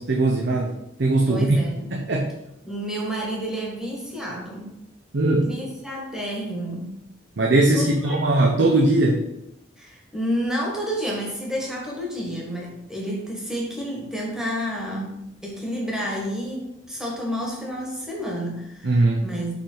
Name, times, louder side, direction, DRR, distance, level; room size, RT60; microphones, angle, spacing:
voice 1, 0.0-1.6 1.9-2.3 5.1-5.5 7.4-9.2 18.8-19.2, right 2 dB, 65° right, 0 dB, 0.7 m, -20 dB
voice 2, 1.3-1.9 2.6-4.7 5.3-6.9 7.7-8.4 9.8-15.2 15.4-19.5, equal, 5° right, -3 dB, 1.4 m, -30 dB
5.1 x 5.0 x 3.9 m, 0.83 s
head